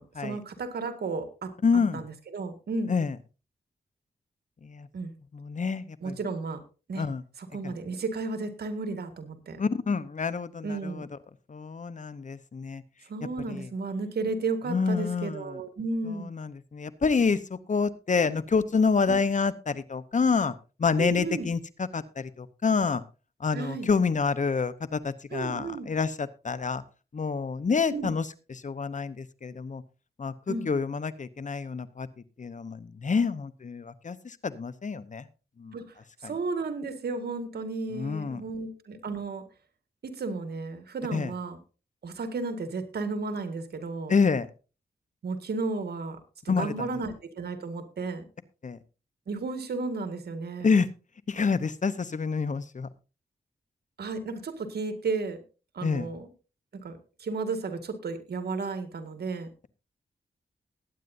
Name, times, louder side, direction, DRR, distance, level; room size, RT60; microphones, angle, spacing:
voice 1, 0.0-1.5 1.9-2.9 4.9-5.1 6.0-6.6 6.9-7.1 7.4-9.6 10.6-11.0 13.1-16.3 19.1-19.2 21.0-21.5 23.5-23.9 25.3-25.9 27.9-28.1 30.5-30.7 35.7-35.8 36.2-39.4 40.0-41.6 42.0-44.2 45.2-46.2 46.4-48.3 49.3-50.8 54.0-55.4 55.7-56.3 56.8-59.5, right 3 dB, 80° right, 8 dB, 1.9 m, -33 dB
voice 2, 1.6-2.0 2.9-3.1 4.6-4.9 5.3-6.1 7.0-7.2 7.6-7.7 9.6-11.1 11.5-12.8 13.5-13.7 14.7-15.4 16.1-20.5 20.8-23.0 23.4-26.8 27.1-28.3 28.6-29.8 30.2-32.1 32.4-35.3 35.6-35.8 37.9-38.4 41.1-41.3 44.1-44.5 46.5-46.9 48.6-48.8 50.6-50.9 51.3-52.9 55.8-56.1, left 5 dB, 50° left, 15 dB, 0.9 m, -27 dB
20.0 x 9.2 x 2.7 m, 0.32 s
cardioid pair, 60°, 17 cm